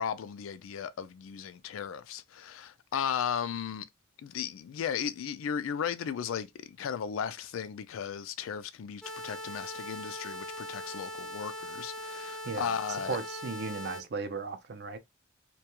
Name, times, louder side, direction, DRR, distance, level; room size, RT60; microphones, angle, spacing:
voice 1, 0.0-3.8 4.2-13.2, left 7 dB, 80° left, 0.3 m, -35 dB
sound 1, 9.0-14.0, equal, 5° left, 0.4 m, -40 dB
voice 2, 12.4-12.8 13.1-15.0, right 4 dB, 55° right, 0.4 m, -36 dB
2.3 x 2.2 x 2.8 m
head